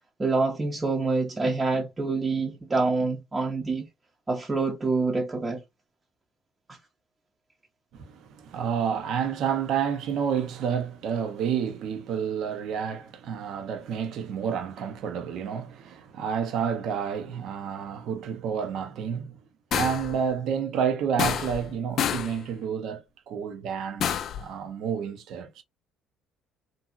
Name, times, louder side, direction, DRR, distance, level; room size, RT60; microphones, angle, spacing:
voice 1, 0.2-3.9 4.3-5.6, right 3 dB, 25° right, 0.7 m, -26 dB
voice 2, 7.9-19.4 19.7-25.6, right 7 dB, 65° right, 0.6 m, -30 dB
sound 1, 19.7-20.2 21.2-21.7 22.0-22.4 24.0-24.4, left 9 dB, 60° left, 0.3 m, -28 dB
2.7 x 2.6 x 2.4 m
hypercardioid pair, 60°, 0 cm